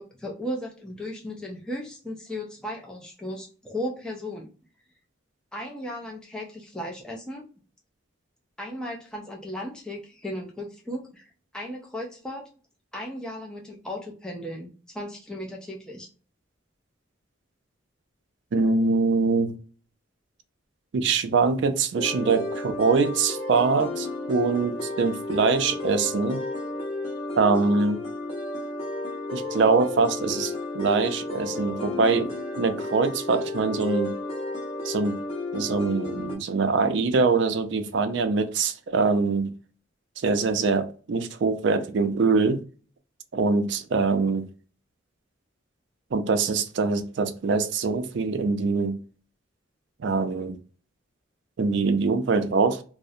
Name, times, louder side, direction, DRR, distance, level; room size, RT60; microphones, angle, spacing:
voice 1, 0.0-4.5 5.5-7.5 8.6-11.3 11.5-12.4 12.9-16.1, left 1 dB, 5° left, 0.4 m, -36 dB
voice 2, 18.5-19.5 20.9-26.4 27.4-28.0 29.3-34.1 34.8-35.2 35.5-39.5 40.2-42.6 43.3-44.4 46.1-49.0 50.0-50.6 51.6-52.8, right 4 dB, 65° right, 0.4 m, -23 dB
sound 1, 22.0-36.4, left 2 dB, 30° left, 1.1 m, -32 dB
2.4 x 2.0 x 2.6 m
head